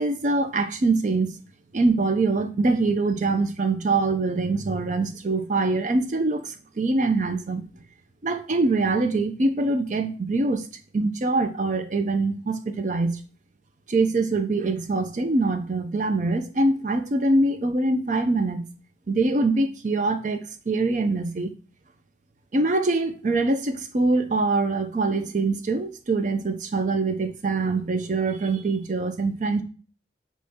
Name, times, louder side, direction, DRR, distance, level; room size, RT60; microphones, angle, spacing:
voice 1, 0.0-1.3 1.7-7.6 8.2-10.7 10.9-13.2 13.9-18.6 19.1-21.5 22.5-29.6, right 3 dB, 40° right, 8 dB, 0.5 m, -24 dB
4.2 x 3.1 x 3.5 m, 0.37 s
head